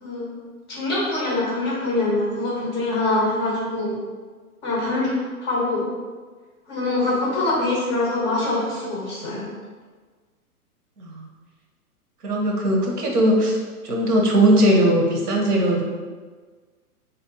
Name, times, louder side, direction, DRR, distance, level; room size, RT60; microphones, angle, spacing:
voice 1, 0.7-4.0 4.6-5.1 5.4-5.8 6.7-9.4, left 2 dB, 20° left, -5 dB, 0.4 m, -24 dB
voice 2, 12.2-13.6 13.8-15.8, right 1 dB, 85° right, 0 dB, 0.8 m, -19 dB
2.8 x 2.3 x 3.6 m, 1.4 s
hypercardioid pair, 120°, 45 cm